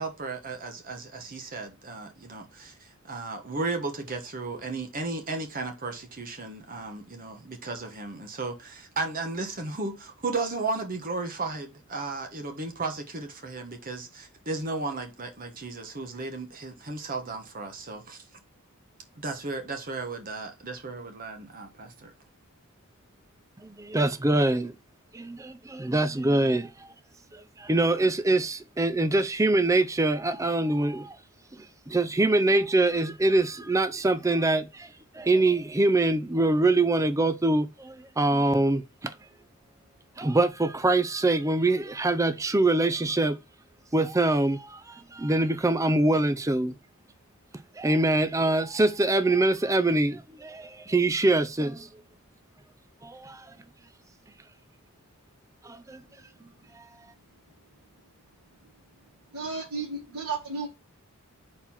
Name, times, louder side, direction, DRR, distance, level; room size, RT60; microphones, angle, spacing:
voice 1, 0.0-18.2 19.1-22.1, right 3 dB, 40° right, 1.2 m, -35 dB
voice 2, 23.6-24.7 25.1-26.7 27.6-31.2 31.9-34.9 35.2-39.1 40.2-43.4 43.9-44.8 45.1-46.8 47.8-51.9 53.0-53.4 55.6-56.0, right 2 dB, 15° right, 0.5 m, -24 dB
voice 3, 59.3-60.7, right 4 dB, 75° right, 1.9 m, -33 dB
4.4 x 4.1 x 5.6 m
head